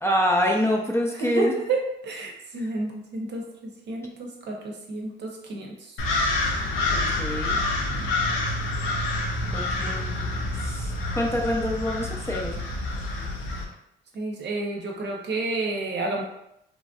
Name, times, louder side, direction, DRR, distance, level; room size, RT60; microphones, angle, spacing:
voice 1, 0.0-1.5 2.6-2.7 6.9-7.6 9.5-10.2 10.5-12.6, equal, 15° left, -1 dB, 0.5 m, -26 dB
voice 2, 1.1-3.4 3.9-5.9 14.1-16.2, right 3 dB, 60° right, 1 dB, 0.7 m, -30 dB
sound 1, 6.0-13.6, left 2 dB, 90° left, 0.6 m, -27 dB
3.1 x 2.6 x 2.3 m, 0.79 s
cardioid pair, 90°, 20 cm